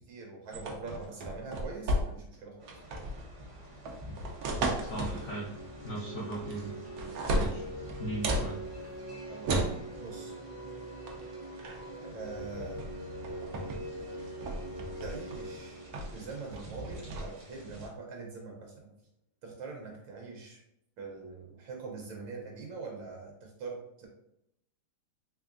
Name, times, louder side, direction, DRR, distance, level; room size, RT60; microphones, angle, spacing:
voice 1, 0.0-2.8 9.3-9.7 10.0-10.3 12.0-12.8 15.0-15.8 16.1-18.9 19.4-20.6 21.0-24.1, right 4 dB, 70° right, 0 dB, 1.4 m, -43 dB
sound 1, 0.5-2.4 2.7-3.2 3.9-5.3 6.3-6.7 7.0-8.5 9.5-9.8 11.1-11.2 11.6-11.9 12.8-12.9 13.2-13.8 14.2-15.4 15.9-16.2 16.5-17.2, right 1 dB, 90° right, 0.8 m, -33 dB
sound 2, 2.6-17.9, equal, 55° right, 0.8 m, -50 dB
sound 3, 4.7-17.3, right 1 dB, 85° left, 0.3 m, -44 dB
voice 2, 4.8-5.5 5.8-6.7 7.3-7.6 8.0-8.6, right 1 dB, 70° left, -6 dB, 0.7 m, -37 dB
3.7 x 3.2 x 2.5 m, 0.82 s
omnidirectional pair, 2.3 m